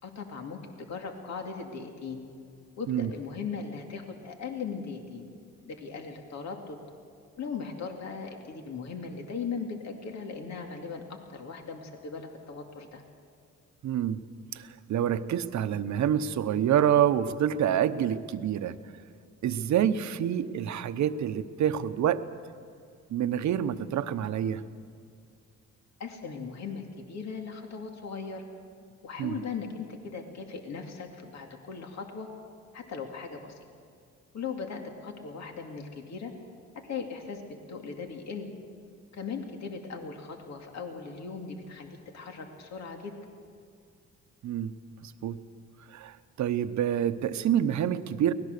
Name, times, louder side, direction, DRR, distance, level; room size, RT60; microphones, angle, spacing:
voice 1, 0.0-2.2 2.8-5.3 5.7-6.8 7.4-13.0 26.0-28.4 29.0-32.3 32.7-33.6 34.3-36.3 36.9-37.4 37.7-38.5 39.1-43.1, left 5 dB, 60° left, 3 dB, 2.5 m, -38 dB
voice 2, 13.8-14.2 14.5-18.8 19.4-22.2 23.1-24.6 29.2-29.4 44.4-44.7 45.0-45.4 45.9-48.3, right 10 dB, 70° right, 11 dB, 1.0 m, -27 dB
24.0 x 18.5 x 6.7 m, 2.3 s
cardioid pair, 90°, 30 cm